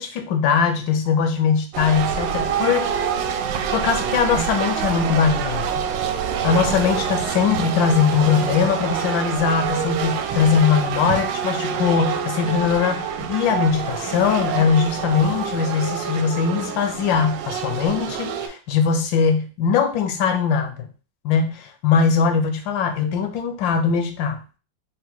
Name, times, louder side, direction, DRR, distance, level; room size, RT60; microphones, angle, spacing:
voice 1, 0.0-2.9 3.7-5.8 6.4-20.9 21.2-24.4, left 6 dB, 85° left, 7 dB, 1.4 m, -21 dB
sound 1, 1.7-18.5, right 7 dB, 80° right, 1.2 m, -26 dB
3.8 x 2.1 x 4.3 m, 0.35 s
omnidirectional pair, 2.0 m